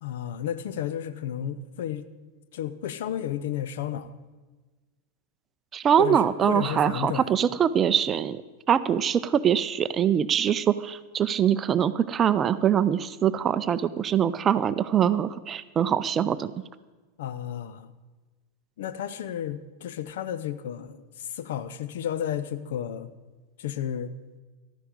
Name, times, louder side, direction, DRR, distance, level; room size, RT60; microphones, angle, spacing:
voice 1, 0.0-2.1 2.5-4.2 6.0-7.3 17.2-17.9 18.8-23.1 23.6-24.1, left 10 dB, 55° left, 13 dB, 0.7 m, -32 dB
voice 2, 5.7-8.4 8.7-16.5, right 9 dB, 25° right, 14 dB, 0.5 m, -23 dB
14.5 x 12.0 x 5.1 m, 1.3 s
figure-of-eight pair, 90°, 0 cm